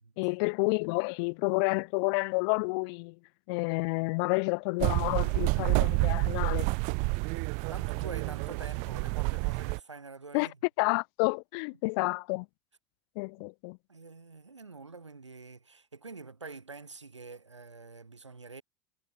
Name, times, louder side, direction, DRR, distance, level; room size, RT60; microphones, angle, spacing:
voice 1, 0.2-3.2 3.5-6.7 10.3-10.5 10.8-12.5 13.2-13.8, left 32 dB, 60° left, 2.4 m, -30 dB
sound 1, 4.8-9.8, right 34 dB, 55° right, 1.1 m, -29 dB
voice 2, 7.7-10.6 13.9-18.6, right 4 dB, 90° right, 3.4 m, -46 dB
figure-of-eight pair, 75°, 15 cm